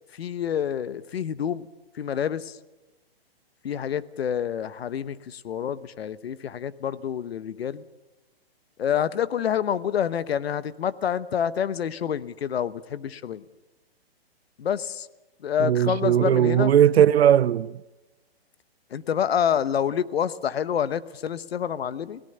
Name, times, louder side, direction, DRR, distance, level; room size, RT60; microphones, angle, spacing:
voice 1, 0.1-1.6 1.9-2.6 3.6-7.8 8.8-13.4 14.6-15.1 15.4-16.7 18.9-22.2, left 8 dB, 75° left, 1.0 m, -27 dB
voice 2, 15.6-17.7, right 10 dB, 80° right, 0.6 m, -18 dB
24.0 x 17.5 x 6.7 m
hypercardioid pair, 160°, 31 cm